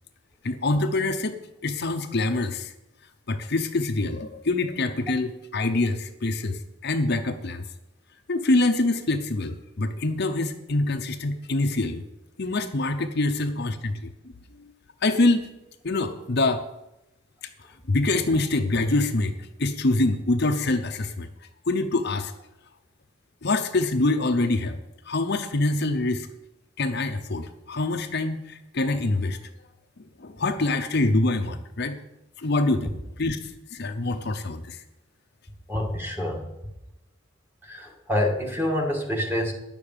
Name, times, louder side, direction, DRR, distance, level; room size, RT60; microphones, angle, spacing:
voice 1, 0.4-2.7 3.3-7.6 8.3-12.0 12.4-14.1 14.5-14.7 15.0-15.5 15.8-16.6 17.9-21.3 21.7-22.3 23.4-24.8 25.1-26.3 26.8-29.4 30.0-32.0 32.4-34.8, left 2 dB, 50° left, 6 dB, 0.8 m, -25 dB
voice 2, 35.7-36.4 37.7-39.5, left 1 dB, 10° right, 0 dB, 1.9 m, -26 dB
10.5 x 6.7 x 9.0 m, 0.91 s
head